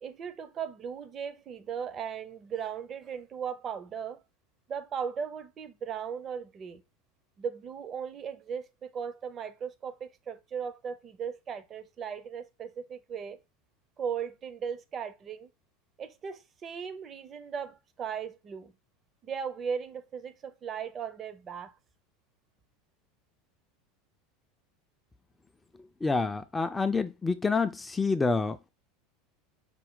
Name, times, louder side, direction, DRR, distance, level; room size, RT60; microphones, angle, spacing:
voice 1, 0.0-4.2 4.7-6.8 7.4-13.4 14.0-15.5 16.0-18.7 19.2-21.8, right 7 dB, 35° right, 0.6 m, -37 dB
voice 2, 26.0-28.7, left 4 dB, 15° left, 0.4 m, -28 dB
5.1 x 2.1 x 3.7 m
figure-of-eight pair, 75°, 0 cm